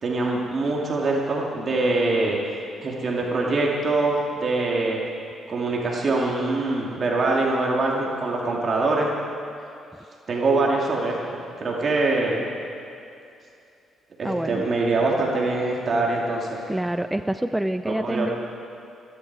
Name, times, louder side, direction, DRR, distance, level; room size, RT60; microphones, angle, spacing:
voice 1, 0.0-2.4 2.8-5.0 5.5-9.1 10.3-11.2 11.6-12.5 14.2-16.7 17.8-18.3, right 2 dB, 45° right, -2 dB, 2.4 m, -23 dB
voice 2, 14.2-14.6 16.7-18.3, right 1 dB, 10° right, 10 dB, 0.4 m, -26 dB
26.5 x 11.0 x 4.8 m, 2.6 s
cardioid pair, 90°, 0 cm